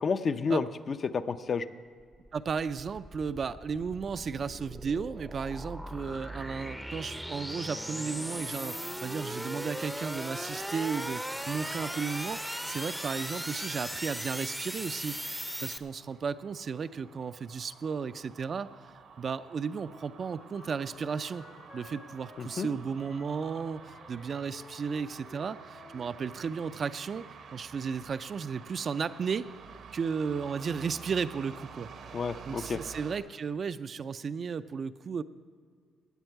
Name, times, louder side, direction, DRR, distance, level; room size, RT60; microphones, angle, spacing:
voice 1, 0.0-1.7 22.4-22.7 32.1-32.8, left 5 dB, 45° left, 10 dB, 0.5 m, -30 dB
sound 1, 2.0-15.8, equal, ahead, 0.6 m, -38 dB
voice 2, 2.3-18.7 19.2-21.5 21.7-29.5 29.9-31.9 32.5-35.2, right 6 dB, 45° right, 12 dB, 0.4 m, -34 dB
sound 2, 13.3-33.2, right 6 dB, 70° right, 1.0 m, -50 dB
Wind instrument woodwind instrument, 19.8-26.1, left 4 dB, 65° left, 2.6 m, -54 dB
17.5 x 8.9 x 4.6 m, 2.1 s
cardioid pair, 90°, 0 cm